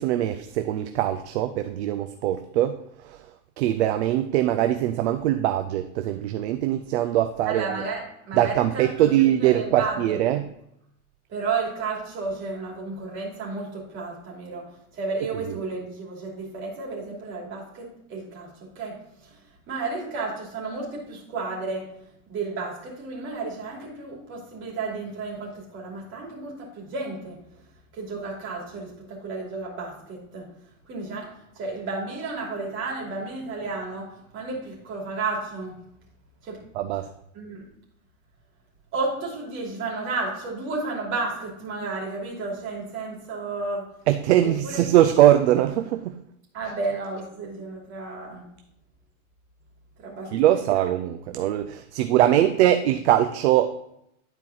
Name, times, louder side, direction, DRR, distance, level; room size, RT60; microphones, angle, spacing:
voice 1, 0.0-3.2 3.6-7.8 8.4-10.5 36.7-37.1 44.1-46.2 50.3-53.8, right 12 dB, 50° right, 9 dB, 0.5 m, -22 dB
voice 2, 7.4-10.2 11.3-27.6 27.9-30.5 30.8-35.8 36.4-36.6 37.3-37.7 38.9-43.9 44.4-44.8 46.5-48.5 50.0-50.3 50.7-50.9, right 3 dB, 25° right, -3 dB, 2.8 m, -32 dB
10.5 x 4.6 x 3.9 m, 0.78 s
supercardioid pair, 160°, 43 cm